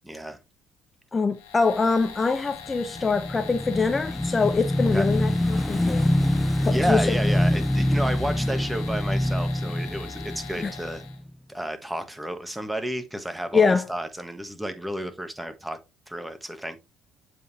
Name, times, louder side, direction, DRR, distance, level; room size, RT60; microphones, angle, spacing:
voice 1, 0.0-0.4 4.9-5.1 6.7-11.0 11.5-15.8 16.1-16.8, right 1 dB, 5° right, 1.4 m, -31 dB
voice 2, 1.1-6.1 6.6-7.1 10.6-10.7 13.5-13.8, left 4 dB, 30° left, 0.7 m, -24 dB
sound 1, 1.3-11.2, left 7 dB, 90° left, 1.9 m, -42 dB
Motorcycle / Engine, 2.7-11.3, left 1 dB, 10° left, 0.3 m, -25 dB
7.7 x 5.3 x 2.8 m
hypercardioid pair, 60°, 0 cm